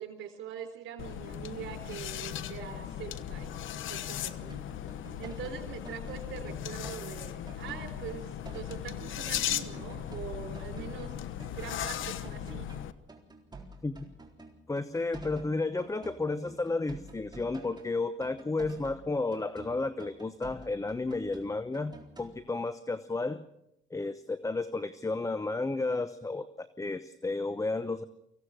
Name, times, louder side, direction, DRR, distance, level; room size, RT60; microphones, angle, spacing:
voice 1, 0.0-3.5 3.9-4.6 5.2-11.1 11.5-12.7, right 8 dB, 80° right, 6 dB, 3.9 m, -43 dB
sound 1, 1.0-12.9, left 10 dB, 80° left, 1.1 m, -37 dB
sound 2, 4.5-8.9 9.1-12.8 13.1-17.9 18.2-22.3, right 2 dB, 20° right, 3.8 m, -49 dB
voice 2, 14.7-23.4 23.9-28.0, left 3 dB, 15° left, 12 dB, 0.9 m, -32 dB
25.0 x 16.5 x 6.4 m, 0.80 s
cardioid pair, 90°, 20 cm